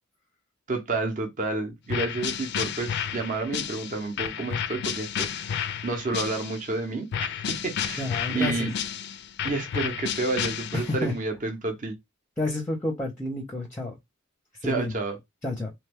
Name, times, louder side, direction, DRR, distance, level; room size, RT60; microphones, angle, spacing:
voice 1, 0.7-8.7 9.4-12.0 14.6-15.2, right 3 dB, 40° right, 0.6 m, -30 dB
sound 1, 1.9-6.7 7.1-11.1, left 8 dB, 55° left, 0.3 m, -31 dB
voice 2, 8.0-8.7 10.7-11.1 12.4-13.9 14.6-14.9 15.4-15.7, left 2 dB, 10° left, 0.6 m, -30 dB
2.9 x 2.2 x 3.3 m
head